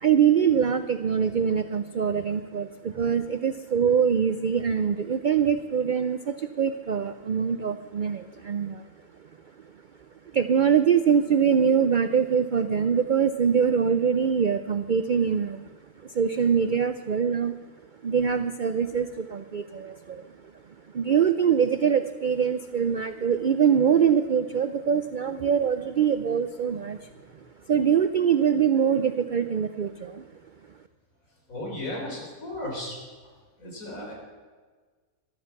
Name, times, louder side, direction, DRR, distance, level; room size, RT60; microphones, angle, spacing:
voice 1, 0.0-8.9 10.3-15.7 16.0-17.6 18.0-20.3 20.9-27.1 27.7-30.2, right 7 dB, 70° right, 10 dB, 0.4 m, -23 dB
voice 2, 31.5-33.0 33.6-34.1, left 1 dB, 65° left, -1 dB, 4.5 m, -35 dB
15.0 x 13.0 x 5.9 m, 1.4 s
omnidirectional pair, 1.5 m